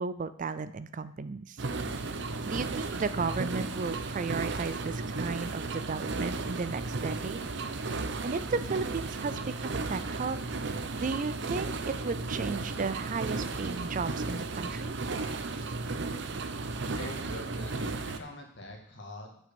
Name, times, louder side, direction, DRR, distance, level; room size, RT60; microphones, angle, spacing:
voice 1, 0.0-1.6 2.4-7.4 7.8-15.0, right 4 dB, 40° right, 14 dB, 0.4 m, -35 dB
sound 1, 1.6-18.2, right 3 dB, 60° right, 0.8 m, -34 dB
voice 2, 16.9-19.4, left 1 dB, 60° left, 2 dB, 2.0 m, -44 dB
7.9 x 6.2 x 7.0 m, 0.67 s
head